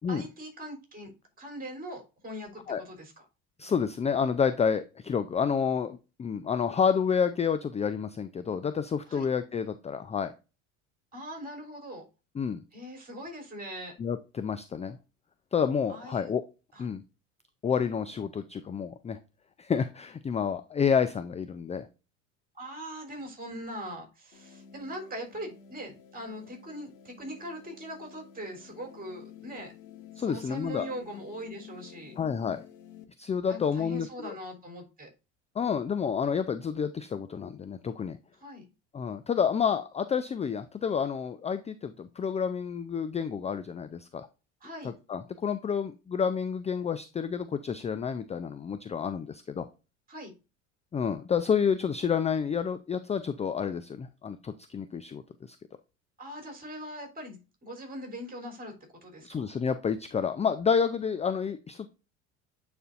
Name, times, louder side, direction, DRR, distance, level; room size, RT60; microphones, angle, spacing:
voice 1, 0.1-1.1 1.4-3.1 9.1-9.3 11.1-12.0 12.7-13.9 15.9-16.4 16.7-16.9 22.5-29.7 30.2-32.2 33.5-35.1 38.4-38.7 44.6-44.9 50.1-50.3 56.2-58.7 59.0-59.4, equal, 20° right, 3 dB, 3.5 m, -41 dB
voice 2, 3.6-10.3 12.4-12.6 14.0-15.0 15.5-16.4 16.8-17.0 17.6-19.2 19.6-21.9 30.2-30.9 32.2-32.6 33.2-34.3 35.6-38.2 38.9-44.3 45.1-49.7 50.9-55.2 55.5-55.6 59.2-61.9, left 6 dB, 15° left, 11 dB, 0.5 m, -29 dB
sound 1, 24.3-33.1, left 9 dB, 85° left, 1.1 m, -51 dB
9.1 x 4.4 x 2.5 m, 0.30 s
hypercardioid pair, 70°, 39 cm